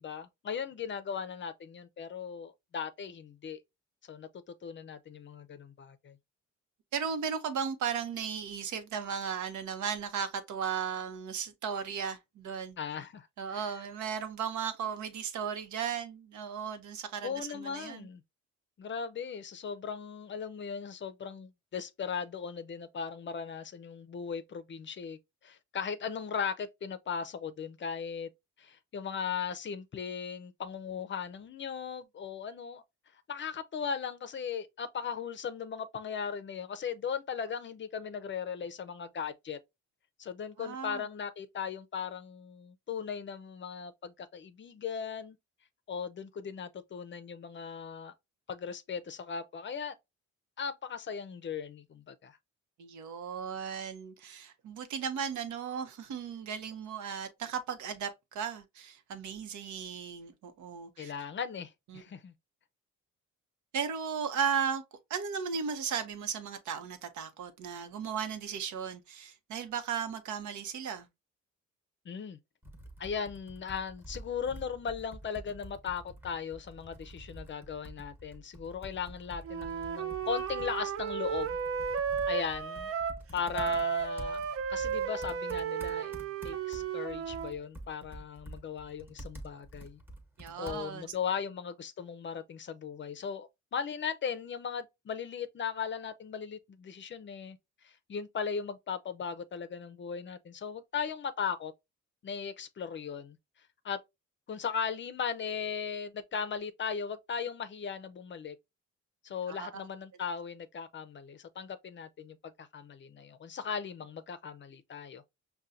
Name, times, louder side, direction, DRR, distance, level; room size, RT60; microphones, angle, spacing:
voice 1, 0.0-3.6 4.1-4.3 4.6-6.2 12.8-13.7 17.2-18.2 18.8-28.3 28.6-32.8 33.3-39.6 40.2-45.4 45.9-48.1 48.5-49.9 50.6-52.4 61.0-62.3 72.1-72.4 73.0-81.9 82.3-82.9 83.3-84.4 84.7-86.1 86.4-90.0 90.6-97.6 97.8-101.7 102.2-103.4 103.8-104.0 104.5-108.6 109.2-115.2, left 6 dB, 40° left, 0.5 m, -38 dB
voice 2, 6.9-12.8 13.4-18.1 40.6-41.0 52.8-61.1 61.9-62.0 63.7-64.8 65.1-71.1 90.4-91.1 109.5-109.7, right 7 dB, 75° right, 0.8 m, -36 dB
Computer keyboard, 72.6-91.1, right 1 dB, 5° right, 1.1 m, -48 dB
Wind instrument woodwind instrument, 79.4-83.2 83.5-87.5, right 7 dB, 50° right, 0.5 m, -34 dB
5.5 x 2.2 x 2.4 m
cardioid pair, 90°, 30 cm